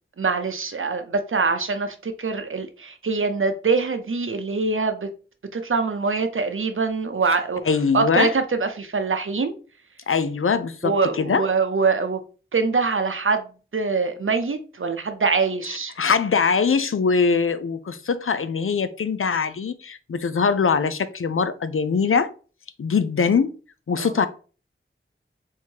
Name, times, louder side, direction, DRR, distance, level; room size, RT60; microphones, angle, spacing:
voice 1, 0.2-5.1 5.5-7.6 7.9-9.5 10.8-12.2 12.5-13.5 13.7-15.9 24.0-24.1, right 4 dB, 80° right, 0.6 m, -24 dB
voice 2, 7.7-8.3 10.1-11.4 16.0-22.3 22.8-23.5 23.9-24.3, left 5 dB, 85° left, 0.5 m, -22 dB
3.6 x 2.8 x 4.5 m
wide cardioid pair, 50°, 21 cm